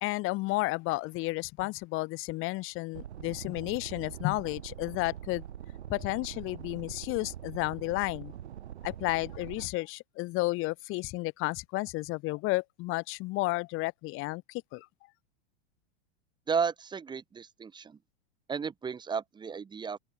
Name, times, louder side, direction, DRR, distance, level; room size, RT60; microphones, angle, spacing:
voice 1, 0.0-5.4 5.9-8.3 8.8-14.9, left 22 dB, 40° left, 1.2 m, -32 dB
sound 1, 2.9-9.7, right 11 dB, 85° right, 3.3 m, -43 dB
voice 2, 16.5-18.0 18.5-20.0, right 6 dB, 15° right, 1.0 m, -33 dB
open air
hypercardioid pair, 120°, 33 cm